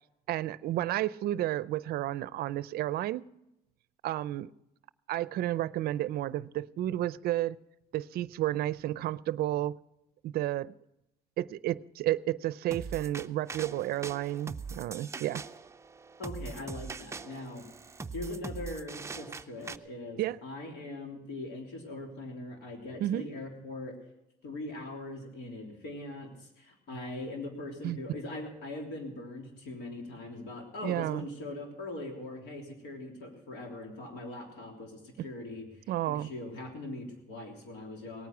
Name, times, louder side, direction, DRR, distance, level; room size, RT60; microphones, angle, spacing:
voice 1, 0.3-3.3 4.0-4.5 5.1-7.6 7.9-9.8 10.2-10.7 11.4-15.4 20.2-20.4 23.0-23.3 27.8-28.0 30.8-31.3 35.2-35.3 35.9-36.3, right 14 dB, 65° right, 0.5 m, -31 dB
sound 1, 12.7-19.8, right 4 dB, 15° right, 0.5 m, -42 dB
voice 2, 16.2-17.6 18.1-24.0 24.4-35.7 36.1-38.3, left 2 dB, 90° left, 3.3 m, -41 dB
18.5 x 9.3 x 6.0 m
cardioid pair, 110°, 17 cm